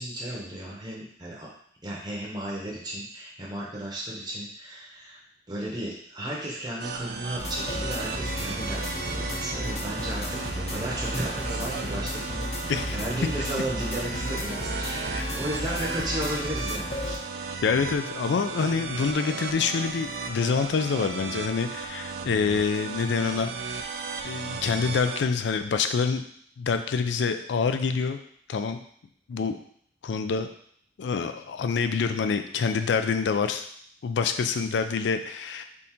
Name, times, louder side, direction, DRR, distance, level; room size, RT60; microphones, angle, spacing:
voice 1, 0.0-1.5 1.8-5.2 5.5-17.2, right 1 dB, 25° right, -4 dB, 0.7 m, -34 dB
sound 1, 6.8-25.2, right 5 dB, 60° right, 0.4 m, -35 dB
sound 2, 7.4-17.2, left 1 dB, 35° left, 0.7 m, -33 dB
voice 2, 17.6-23.5 24.2-26.2 26.6-28.2 28.5-28.8 29.3-29.6 30.0-30.5 31.0-33.6 34.0-35.6, left 5 dB, 80° left, 8 dB, 0.4 m, -26 dB
3.6 x 2.6 x 4.3 m, 0.63 s
head